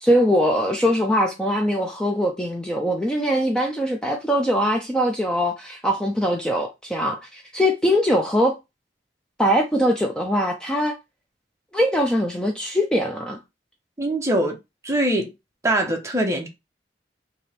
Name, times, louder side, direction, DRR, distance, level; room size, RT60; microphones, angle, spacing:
voice 1, 0.0-8.6 9.4-11.0 11.7-13.4, equal, 5° left, 0.6 m, -22 dB
voice 2, 14.0-14.6 14.8-15.3 15.6-16.5, right 1 dB, 15° right, 0.9 m, -22 dB
3.4 x 2.9 x 4.3 m
head